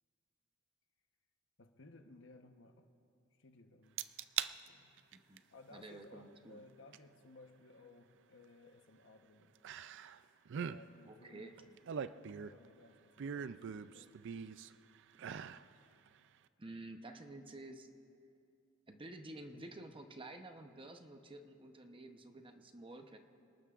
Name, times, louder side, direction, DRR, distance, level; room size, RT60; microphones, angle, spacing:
voice 1, 1.6-2.9 3.3-4.1 4.7-5.1 5.5-9.6 10.7-14.5 19.5-19.8, left 2 dB, 60° left, 5 dB, 1.1 m, -60 dB
sound 1, 4.0-4.5 5.0-5.4 6.9-7.0 9.6-10.2 10.5-10.8 11.6-12.7 13.2-14.7 15.1-15.6 16.1-16.2, right 8 dB, 60° right, 0.4 m, -41 dB
voice 2, 5.1-5.4 5.7-6.6 11.0-11.5 16.6-17.9 18.9-23.2, right 2 dB, 25° right, 5 dB, 0.8 m, -51 dB
28.0 x 19.0 x 2.5 m, 2.5 s
head